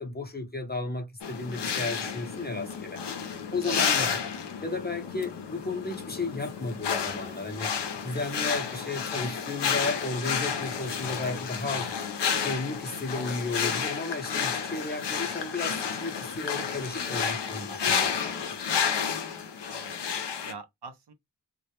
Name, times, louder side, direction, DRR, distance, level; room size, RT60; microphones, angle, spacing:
voice 1, 0.0-3.0 3.5-4.2 4.6-7.7 8.0-11.9 12.3-18.6, left 3 dB, 25° left, 0.6 m, -34 dB
sound 1, 1.2-20.5, left 6 dB, 70° left, 0.6 m, -31 dB
voice 2, 15.0-15.4 19.7-20.0 20.4-21.1, right 4 dB, 65° right, 0.6 m, -43 dB
2.2 x 2.0 x 2.8 m
wide cardioid pair, 60°, 43 cm